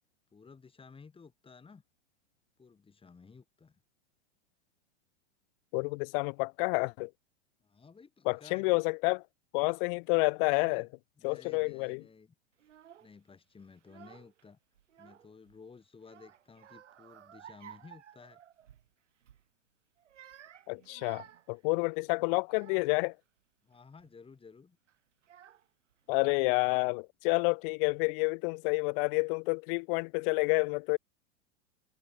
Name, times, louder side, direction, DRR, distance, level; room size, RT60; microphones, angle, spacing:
voice 1, 0.3-1.8 2.6-3.8 7.6-8.7 10.4-10.9 11.2-12.3 13.0-14.6 15.0-18.4 23.6-24.8, left 5 dB, 15° left, 6.1 m, -54 dB
voice 2, 5.7-7.1 8.2-9.2 9.5-10.9 11.2-12.0 20.7-23.1 26.1-31.0, left 34 dB, 50° left, 1.5 m, -29 dB
Child speech kid speaking / Crying sobbing, 12.6-13.1 13.8-14.4 14.7-15.6 16.0-18.9 19.2-19.5 20.0-23.1 23.7-24.1 24.9-25.0 25.2-25.9, right 10 dB, 80° right, 2.8 m, -55 dB
hypercardioid pair, 110°, 36 cm